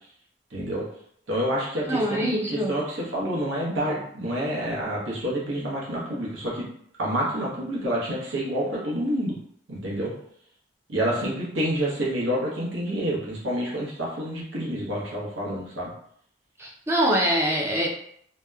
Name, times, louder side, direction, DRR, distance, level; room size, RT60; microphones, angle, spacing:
voice 1, 0.5-0.8 1.3-6.7 7.0-9.3 9.7-10.1 10.9-15.9, equal, 85° right, -4 dB, 0.8 m, -28 dB
voice 2, 1.9-2.7 16.6-17.9, equal, 15° right, -2 dB, 0.3 m, -24 dB
2.8 x 2.0 x 2.3 m, 0.67 s
head